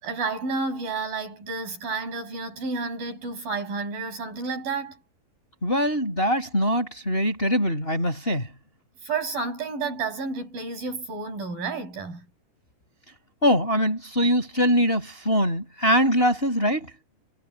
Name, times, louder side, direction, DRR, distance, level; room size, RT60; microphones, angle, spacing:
voice 1, 0.0-5.0 9.0-12.3, right 4 dB, 50° right, 8.9 m, -31 dB
voice 2, 5.6-8.5 13.4-16.9, equal, 10° left, 5.9 m, -23 dB
omnidirectional pair, 5.1 m